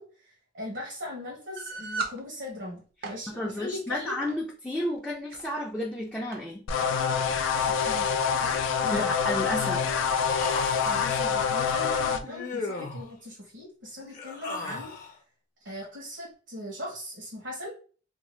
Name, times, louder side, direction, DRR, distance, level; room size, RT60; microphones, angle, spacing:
voice 1, 0.0-4.1 7.6-9.1 10.8-14.9 15.6-17.7, left 1 dB, 80° right, -4 dB, 1.0 m, -39 dB
sound 1, 1.6-2.2 2.8-3.2 4.2-4.4 5.1-5.5 6.3-6.4 6.7-6.8 7.6-7.8, right 3 dB, 55° right, 0.5 m, -35 dB
voice 2, 3.3-6.6 8.9-9.9, left 1 dB, 5° left, -3 dB, 0.3 m, -32 dB
sound 2, 6.7-12.2, left 6 dB, 80° left, 0.3 m, -26 dB
Human voice, 9.7-11.2 12.2-13.1 14.0-15.1, left 3 dB, 45° left, 0.7 m, -36 dB
2.6 x 2.2 x 3.1 m, 0.38 s
head